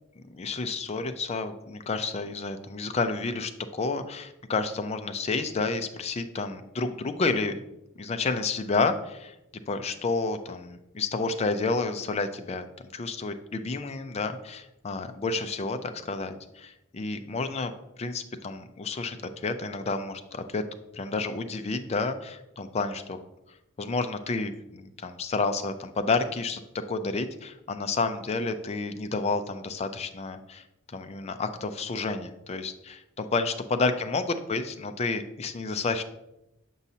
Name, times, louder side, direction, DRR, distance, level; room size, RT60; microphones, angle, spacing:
voice 1, 0.2-7.6 8.0-9.3 9.7-12.6 12.9-17.7 18.0-19.2 19.4-20.6 20.9-23.2 23.8-26.6 26.9-36.0, left 3 dB, 30° left, 8 dB, 0.4 m, -30 dB
7.1 x 5.4 x 2.7 m, 0.88 s
head